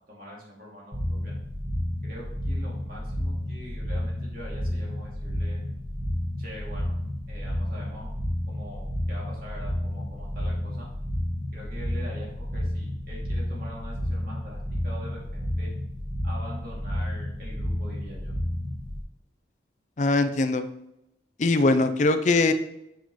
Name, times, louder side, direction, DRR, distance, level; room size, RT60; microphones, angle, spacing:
voice 1, 0.1-1.4 2.0-5.6 6.4-6.9 7.3-8.1 8.5-10.9 11.5-15.7 16.2-18.3, equal, 50° right, -4 dB, 2.3 m, -43 dB
sound 1, 0.9-19.0, left 1 dB, 30° right, 1.6 m, -31 dB
voice 2, 20.0-20.6 21.4-22.5, left 2 dB, 40° left, 9 dB, 0.4 m, -21 dB
7.1 x 5.7 x 3.0 m, 0.83 s
head